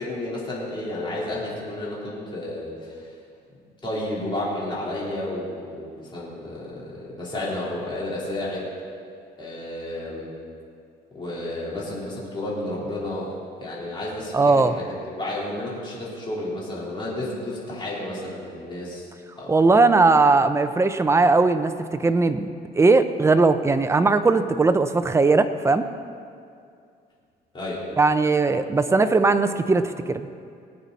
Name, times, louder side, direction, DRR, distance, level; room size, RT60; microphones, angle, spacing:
voice 1, 0.0-3.1 3.8-8.7 9.4-10.3 11.1-13.3 13.6-19.1 19.4-19.5 27.5-27.8, left 1 dB, 25° left, -6 dB, 3.9 m, -31 dB
voice 2, 14.3-14.7 19.5-22.5 22.7-25.9 28.0-30.2, right 3 dB, 15° right, 9 dB, 0.6 m, -19 dB
20.0 x 9.0 x 4.2 m, 2.3 s
cardioid pair, 130°, 18 cm